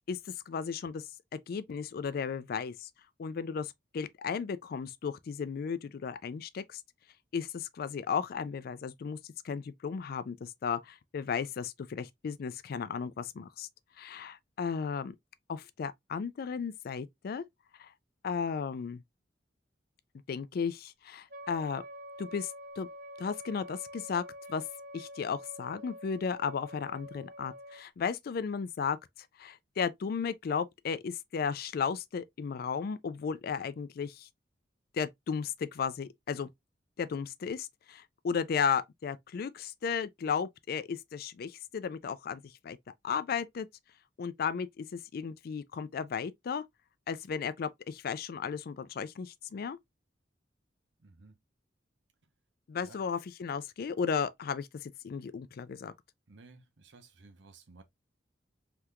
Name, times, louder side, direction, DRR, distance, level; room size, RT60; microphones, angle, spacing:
voice 1, 0.5-1.1 1.3-2.9 3.2-6.8 7.3-9.2 9.4-13.7 14.0-15.2 15.5-17.4 17.8-17.9 18.2-19.0 20.3-21.8 22.2-22.9 23.2-24.2 24.5-24.6 24.9-29.0 29.4-34.3 34.9-36.5 37.0-42.8 43.0-43.7 44.2-46.6 47.1-49.8 52.7-55.9, left 6 dB, 55° left, 0.4 m, -35 dB
Wind instrument woodwind instrument, 21.3-27.9, equal, 60° right, 1.3 m, -47 dB
voice 2, 51.0-51.4 52.8-53.0 56.3-57.8, right 3 dB, 85° right, 0.7 m, -55 dB
3.5 x 2.9 x 2.3 m
head